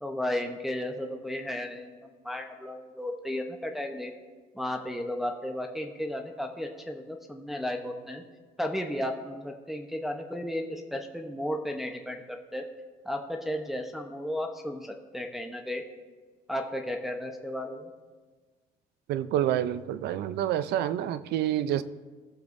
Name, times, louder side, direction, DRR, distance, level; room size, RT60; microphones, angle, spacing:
voice 1, 0.0-4.1 4.5-8.2 8.6-12.7 13.0-15.8 16.5-17.9, left 1 dB, ahead, 2 dB, 0.8 m, -34 dB
voice 2, 19.1-21.8, right 11 dB, 75° right, 14 dB, 0.5 m, -28 dB
19.0 x 7.1 x 2.6 m, 1.4 s
cardioid pair, 110°, 17 cm